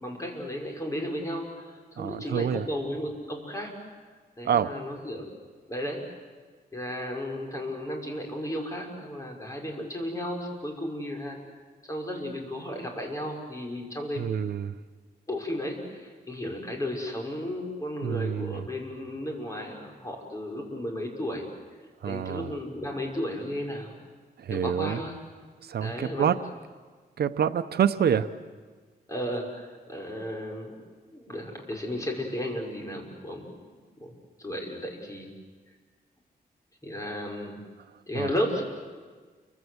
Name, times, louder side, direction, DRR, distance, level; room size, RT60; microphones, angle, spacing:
voice 1, 0.0-3.7 4.4-5.3 5.7-6.0 6.7-11.4 11.9-14.3 15.3-21.5 22.0-23.9 24.5-25.1 25.8-26.3 29.1-30.7 31.1-33.5 34.0-34.1 34.4-35.3 36.8-37.6 38.1-38.6, left 1 dB, 20° left, 1 dB, 5.9 m, -34 dB
voice 2, 2.0-2.7 4.4-4.8 14.2-14.8 18.0-18.7 22.0-22.5 24.4-25.0 25.6-26.4 27.2-28.3 38.2-38.3, right 8 dB, 75° right, 11 dB, 0.9 m, -27 dB
29.5 x 24.5 x 8.1 m, 1.5 s
wide cardioid pair, 115°, 16 cm